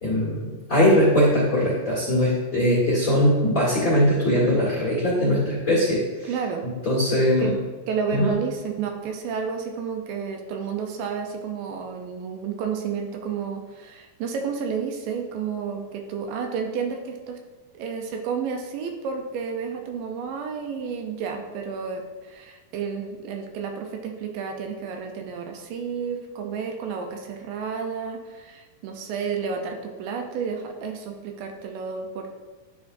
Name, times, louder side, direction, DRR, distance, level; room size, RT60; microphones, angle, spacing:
voice 1, 0.0-6.0 6.8-7.5 8.1-8.3, left 1 dB, 45° left, -7 dB, 1.2 m, -20 dB
voice 2, 6.2-6.7 7.4-17.4 17.7-32.4, right 6 dB, 80° right, 3 dB, 2.3 m, -31 dB
11.0 x 4.8 x 2.6 m, 1.3 s
omnidirectional pair, 4.1 m